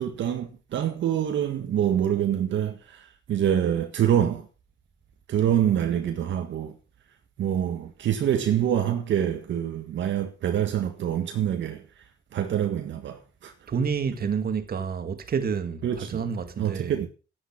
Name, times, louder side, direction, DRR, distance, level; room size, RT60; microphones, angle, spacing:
voice 1, 0.0-4.5 5.3-6.8 7.4-11.8 12.3-13.5 15.8-16.2 16.6-17.1, right 10 dB, 70° right, 1.7 m, -26 dB
voice 2, 13.7-16.9, right 6 dB, 50° right, 2.2 m, -29 dB
11.5 x 10.0 x 6.0 m
cardioid pair, 90°, 20 cm